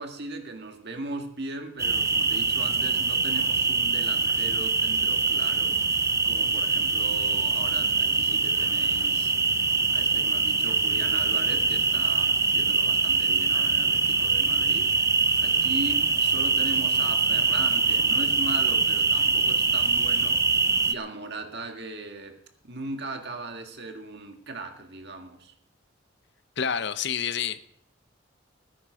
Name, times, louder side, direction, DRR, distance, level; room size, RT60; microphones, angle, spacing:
voice 1, 0.0-5.8 6.2-9.3 9.9-14.9 15.4-20.4 20.9-22.4 22.6-25.5, right 2 dB, 55° right, 5 dB, 1.8 m, -38 dB
sound 1, 1.8-20.9, right 4 dB, 15° right, 0.6 m, -24 dB
voice 2, 26.6-27.6, left 7 dB, 60° left, 13 dB, 0.7 m, -28 dB
18.5 x 10.0 x 5.0 m, 0.69 s
head